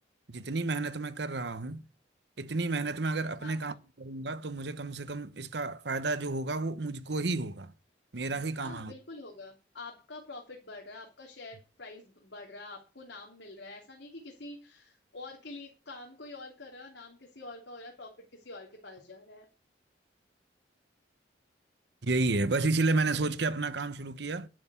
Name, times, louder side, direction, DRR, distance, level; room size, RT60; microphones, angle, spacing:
voice 1, 0.3-1.8 2.4-7.7 8.1-8.9 22.0-24.5, right 3 dB, 65° right, 0.9 m, -31 dB
voice 2, 3.4-3.8 8.6-19.5, left 2 dB, 75° left, 3.1 m, -46 dB
11.5 x 7.8 x 7.0 m
head